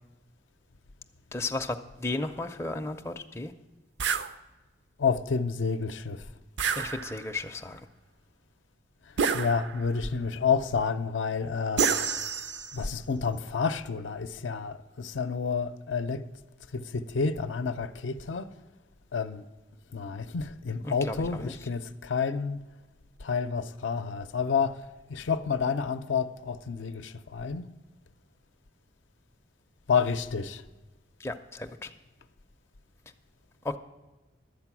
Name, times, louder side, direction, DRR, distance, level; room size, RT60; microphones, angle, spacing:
voice 1, 1.3-3.5 6.8-7.8 20.8-21.6 31.2-31.9 33.6-33.8, left 2 dB, 15° left, 0.4 m, -34 dB
sound 1, 4.0-4.3 6.6-7.4 9.2-10.0 11.8-12.9, right 6 dB, 70° right, 0.5 m, -29 dB
voice 2, 5.0-6.2 9.3-11.9 12.7-16.2 16.7-18.5 19.1-19.5 19.9-22.6 23.2-24.8 25.1-27.7 29.9-30.6, left 5 dB, 80° left, 0.5 m, -29 dB
11.5 x 8.3 x 6.0 m
head